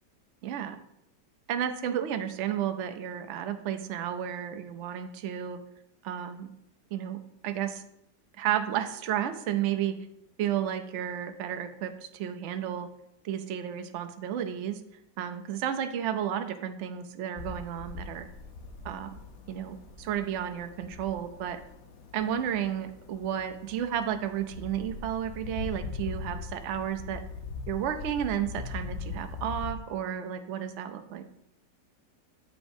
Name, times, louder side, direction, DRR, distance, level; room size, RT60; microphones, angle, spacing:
voice 1, 0.4-0.8 1.5-5.6 6.0-6.5 6.9-7.8 8.4-9.9 10.4-12.9 13.2-14.8 15.2-18.3 18.8-19.2 19.5-21.6 22.1-27.2 27.7-31.2, right 10 dB, 80° right, 7 dB, 0.6 m, -32 dB
sound 1, 17.4-29.7, left 4 dB, 50° left, 0.9 m, -41 dB
8.3 x 7.8 x 2.7 m, 0.79 s
omnidirectional pair, 1.9 m